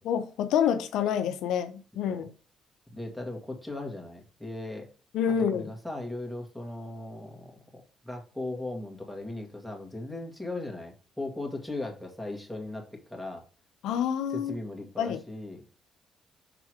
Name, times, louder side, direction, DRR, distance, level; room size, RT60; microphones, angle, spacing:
voice 1, 0.0-2.3 5.1-5.7 13.8-14.6 15.0-15.2, left 8 dB, 85° left, 0.5 m, -27 dB
voice 2, 2.9-4.9 5.5-13.4 14.3-15.6, left 2 dB, ahead, 1.9 m, -38 dB
6.0 x 3.6 x 4.8 m
cardioid pair, 90°, 0 cm